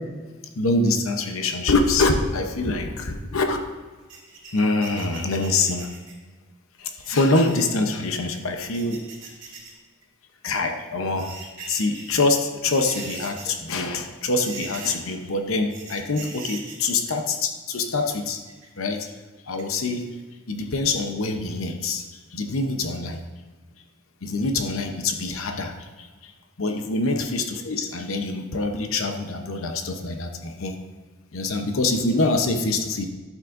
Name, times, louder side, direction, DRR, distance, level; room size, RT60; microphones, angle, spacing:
voice 1, 0.6-3.6 4.5-5.9 6.8-9.0 10.4-11.3 11.7-18.4 18.8-19.1 19.5-20.1 20.5-22.0 22.3-23.2 24.2-26.3 26.6-30.8 31.3-33.0, left 3 dB, 85° left, 5 dB, 0.8 m, -25 dB
sound 1, 4.1-6.2 6.9-7.8 8.5-9.7 10.0-10.1 10.9-12.1 12.6-13.7 14.0-14.1 14.4-15.1 15.7-16.9 18.0-18.8 19.5-20.2 20.5-20.6 21.0-21.1, right 4 dB, 45° right, 2.6 m, -40 dB
11.5 x 7.3 x 2.6 m, 1.4 s
head